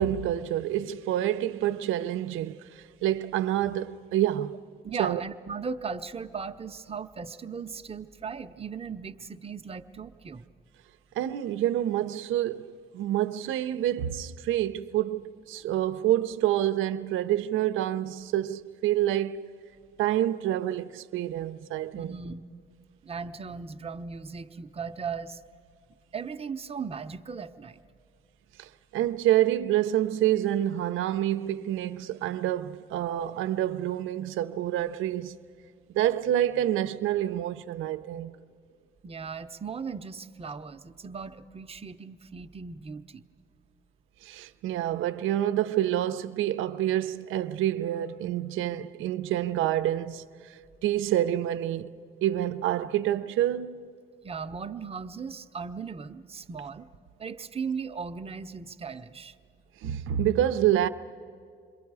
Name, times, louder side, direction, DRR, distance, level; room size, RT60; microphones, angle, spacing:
voice 1, 0.0-4.6 5.0-5.2 11.2-19.5 20.0-22.1 28.6-35.4 35.9-38.4 44.2-53.9 59.8-60.9, right 12 dB, 85° right, 0.6 m, -27 dB
voice 2, 4.8-10.4 21.9-22.4 23.0-25.4 26.1-27.8 39.0-43.2 54.2-56.8 57.2-59.3, right 5 dB, 30° right, 0.7 m, -37 dB
27.5 x 22.0 x 4.8 m
cardioid pair, 90°, 20 cm